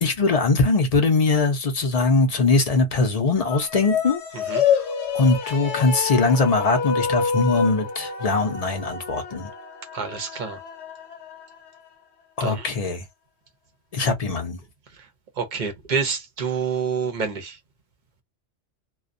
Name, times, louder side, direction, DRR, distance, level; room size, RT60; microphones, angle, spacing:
voice 1, 0.0-4.2 4.7-4.8 5.1-9.5 12.4-13.0 13.9-14.6, left 3 dB, 45° left, 0.5 m, -21 dB
sound 1, 3.4-11.9, left 6 dB, 75° left, 0.9 m, -28 dB
voice 2, 9.9-10.6 12.4-12.7 15.4-17.6, right 5 dB, 50° right, 0.7 m, -27 dB
2.3 x 2.2 x 2.5 m
omnidirectional pair, 1.2 m